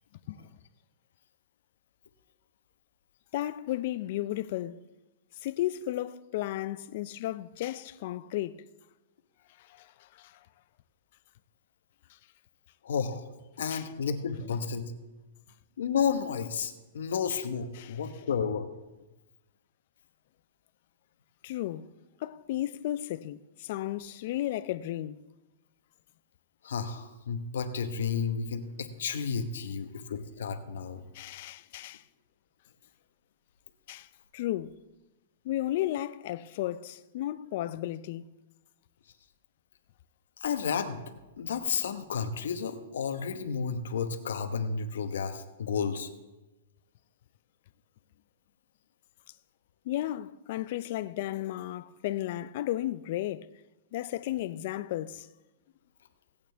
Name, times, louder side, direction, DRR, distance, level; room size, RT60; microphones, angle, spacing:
voice 1, 3.3-4.8 5.4-8.6 9.7-9.9 10.2-10.3 13.7-13.8 17.8-17.9 21.4-21.9 22.2-25.2 31.1-32.0 33.9-34.1 34.3-34.7 35.5-38.3 49.9-53.5 53.9-55.3, left 14 dB, 50° left, 0.4 m, -34 dB
voice 2, 12.8-13.3 13.6-14.9 15.8-18.7 26.6-31.0 40.4-41.0 41.4-46.1, left 6 dB, 80° left, 1.1 m, -32 dB
17.0 x 8.7 x 3.4 m
hypercardioid pair, 160°, 0 cm